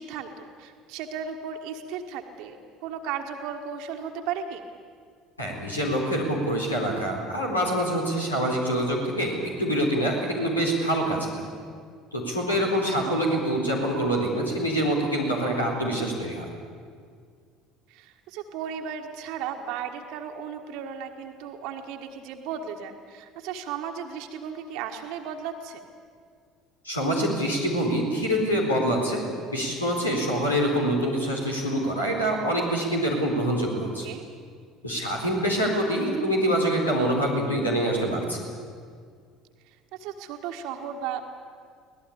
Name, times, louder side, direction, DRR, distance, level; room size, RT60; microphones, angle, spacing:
voice 1, 0.0-2.6 2.8-4.6 12.9-13.1 17.9-25.8 33.8-34.2 39.9-41.2, right 7 dB, 60° right, 4 dB, 1.6 m, -35 dB
voice 2, 5.4-11.5 12.1-16.5 26.8-29.2 29.5-34.1 34.8-38.5, equal, 85° left, -2 dB, 4.1 m, -25 dB
24.5 x 18.0 x 8.7 m, 2.1 s
figure-of-eight pair, 60°, 0 cm